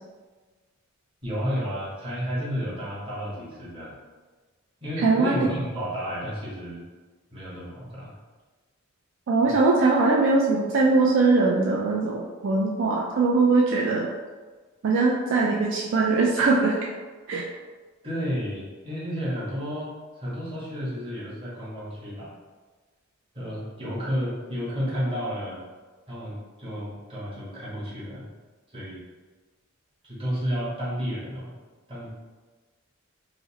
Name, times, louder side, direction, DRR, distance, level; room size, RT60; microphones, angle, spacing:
voice 1, 1.2-3.9 4.8-6.8 7.3-8.1 18.0-22.3 23.3-25.6 26.1-28.3 28.7-29.0 30.0-31.5 31.9-32.1, equal, 25° right, -8 dB, 1.2 m, -31 dB
voice 2, 5.0-5.5 9.3-14.1 14.8-16.8 17.3-17.5, right 3 dB, 60° right, -2 dB, 0.3 m, -21 dB
4.9 x 2.0 x 2.8 m, 1.4 s
head